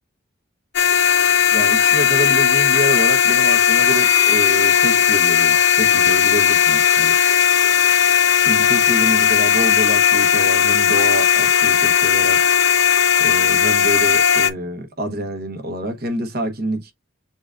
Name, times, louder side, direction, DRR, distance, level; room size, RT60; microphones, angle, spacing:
sound 1, 0.7-14.5, left 8 dB, 65° left, 0.6 m, -16 dB
voice 1, 1.5-7.2 8.4-12.4 13.2-16.9, right 1 dB, 50° right, 1.0 m, -27 dB
6.9 x 2.3 x 2.5 m
head